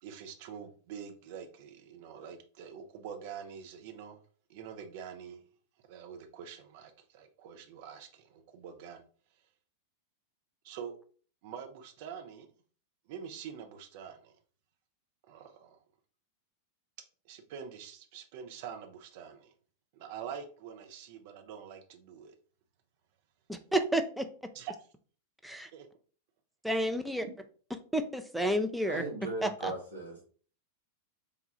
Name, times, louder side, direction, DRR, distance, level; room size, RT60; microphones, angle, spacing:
voice 1, 0.0-4.2 4.5-5.4 5.9-9.0 10.6-10.9 11.4-12.5 13.1-14.3 15.3-15.8 17.2-19.5 19.9-22.3 24.5-24.7 25.7-25.9, right 7 dB, 50° right, 0.7 m, -45 dB
voice 2, 23.5-24.3 25.4-25.7 26.6-27.2 27.9-29.0 29.4-29.7, right 1 dB, ahead, 0.4 m, -30 dB
voice 3, 28.8-30.2, right 3 dB, 70° right, 1.7 m, -37 dB
3.6 x 2.3 x 4.1 m
figure-of-eight pair, 90°, 0 cm